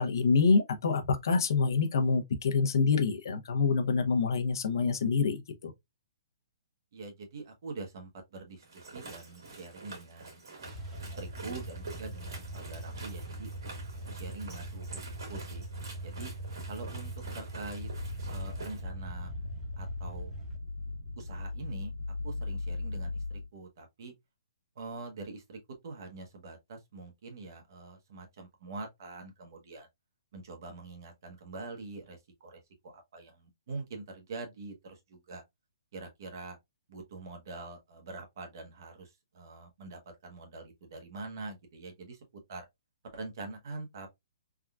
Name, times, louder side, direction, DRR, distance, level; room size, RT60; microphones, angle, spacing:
voice 1, 0.0-5.7, left 4 dB, 65° left, 0.7 m, -26 dB
voice 2, 6.9-10.8 11.2-13.5 14.1-15.0 15.3-15.7 16.0-16.3 16.7-17.9 18.3-19.3 19.8-20.3 21.2-21.9 22.2-24.1 24.8-25.6 25.8-29.9 30.3-35.4 35.9-36.6 36.9-42.2 42.5-42.7 43.1-44.1, right 3 dB, 55° right, 1.0 m, -44 dB
sound 1, 8.6-18.8, right 3 dB, 80° right, 1.7 m, -47 dB
sound 2, 10.6-20.6, right 1 dB, 15° right, 0.9 m, -42 dB
sound 3, 17.7-23.5, left 3 dB, 85° left, 1.0 m, -38 dB
3.6 x 2.3 x 2.3 m
hypercardioid pair, 160°, 2 cm